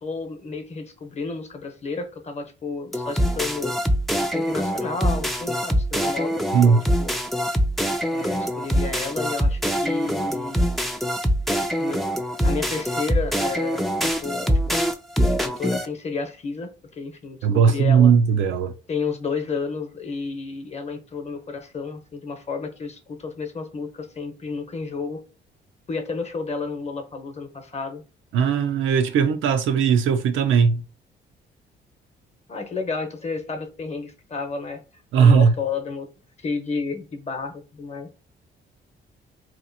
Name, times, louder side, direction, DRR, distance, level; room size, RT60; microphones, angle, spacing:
voice 1, 0.0-3.7 4.2-7.1 8.1-10.7 11.8-12.0 12.4-14.8 15.4-18.1 18.9-25.2 25.9-28.0 32.5-34.8 35.2-36.1 36.4-38.1, left 4 dB, 35° left, 0.9 m, -31 dB
sound 1, 2.9-15.9, equal, ahead, 0.5 m, -24 dB
voice 2, 17.4-18.7 28.3-30.8 35.1-35.6, right 6 dB, 80° right, 0.6 m, -18 dB
2.9 x 2.5 x 4.0 m
cardioid pair, 90°, 20 cm